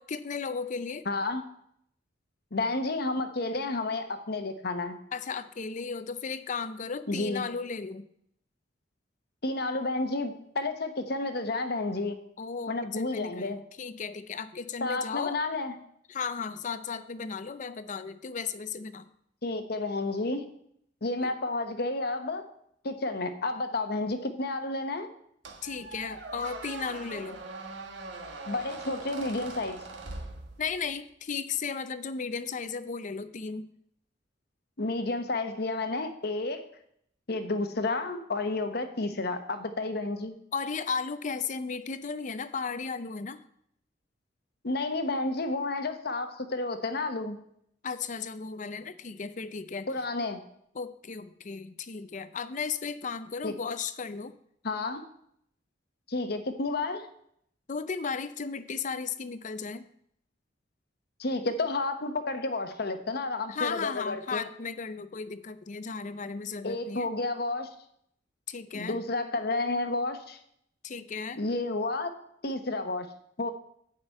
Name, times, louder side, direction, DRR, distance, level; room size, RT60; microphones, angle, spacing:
voice 1, 0.0-1.1 5.1-8.1 12.4-15.4 16.1-19.1 21.2-21.3 25.6-27.4 30.6-33.7 40.5-43.4 47.8-49.9 50.7-54.4 57.7-59.9 63.5-67.1 68.5-69.0 70.8-71.4, left 5 dB, 45° left, 13 dB, 0.5 m, -35 dB
voice 2, 1.1-1.4 2.5-5.0 7.1-7.4 9.4-12.1 12.7-13.6 14.8-15.7 19.4-20.4 21.0-22.4 22.8-25.1 28.5-29.8 34.8-36.6 37.3-40.3 44.6-47.4 49.9-50.4 53.4-53.5 54.6-55.0 56.1-57.1 61.2-64.4 66.6-67.7 68.7-70.4 71.4-72.1 72.4-73.1 73.4-73.5, left 2 dB, 60° left, 8 dB, 1.1 m, -31 dB
Squeak, 25.4-30.9, right 3 dB, 75° right, 1.3 m, -42 dB
9.6 x 5.2 x 8.2 m, 0.71 s
head